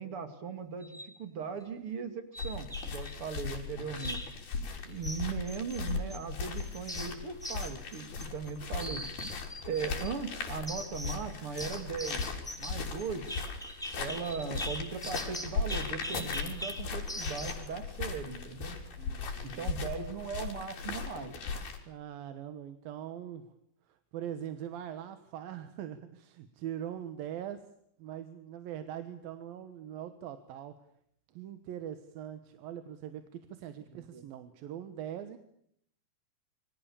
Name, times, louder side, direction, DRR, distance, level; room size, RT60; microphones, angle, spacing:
voice 1, 0.0-4.2 4.8-9.0 9.7-12.3 12.6-13.4 14.0-18.8 19.4-21.3 33.9-34.3, right 5 dB, 40° right, 9 dB, 2.9 m, -38 dB
sound 1, 0.8-1.2 2.3-3.1 4.0-4.4 5.0-6.2 6.6-8.5 8.8-10.1 10.7-11.3 11.6-17.7, equal, ahead, 1.9 m, -42 dB
Walking o ground, 2.4-21.8, left 4 dB, 80° left, 5.5 m, -38 dB
voice 2, 3.7-4.2 19.0-19.7 21.9-23.5 23.9-27.7 28.0-30.8 31.3-35.4, right 10 dB, 75° right, 10 dB, 3.1 m, -42 dB
28.0 x 24.5 x 7.1 m, 0.69 s
omnidirectional pair, 4.3 m